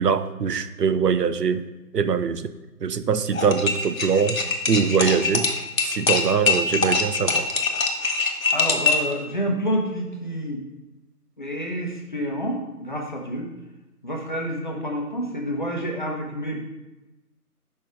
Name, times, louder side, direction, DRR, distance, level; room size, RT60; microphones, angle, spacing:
voice 1, 0.0-1.7 1.9-2.5 2.8-4.4 4.7-5.5 5.8-7.5, right 6 dB, 85° right, 12 dB, 0.6 m, -22 dB
sound 1, 3.3-9.1, left 4 dB, 60° left, 0.9 m, -23 dB
voice 2, 8.5-10.6 11.4-13.5 14.0-16.6, equal, 30° left, 0 dB, 0.8 m, -28 dB
5.2 x 3.9 x 4.7 m, 1.1 s
figure-of-eight pair, 160°, 47 cm